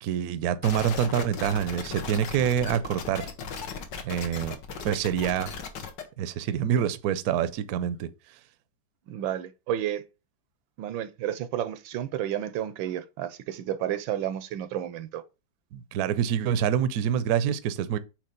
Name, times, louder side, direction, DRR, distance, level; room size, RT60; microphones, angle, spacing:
voice 1, 0.0-3.3 4.0-4.6 4.8-5.5 6.2-8.1 15.7-18.0, right 9 dB, 65° right, 1.0 m, -26 dB
sound 1, 0.6-6.0, left 5 dB, 65° left, 1.7 m, -37 dB
voice 2, 9.1-10.0 10.8-15.2, right 11 dB, 85° right, 1.4 m, -31 dB
8.5 x 3.1 x 5.1 m
omnidirectional pair, 2.1 m